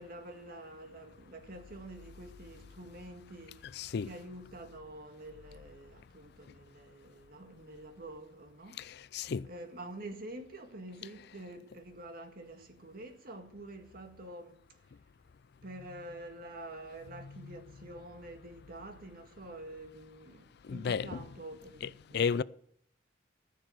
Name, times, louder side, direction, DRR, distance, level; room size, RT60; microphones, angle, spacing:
voice 1, 0.0-14.8 15.6-22.4, right 1 dB, 55° right, 1.9 m, -47 dB
voice 2, 3.7-4.1 9.1-9.5 17.4-17.6 20.7-21.2 21.8-22.4, left 6 dB, 60° left, 0.4 m, -33 dB
14.5 x 6.6 x 8.0 m
head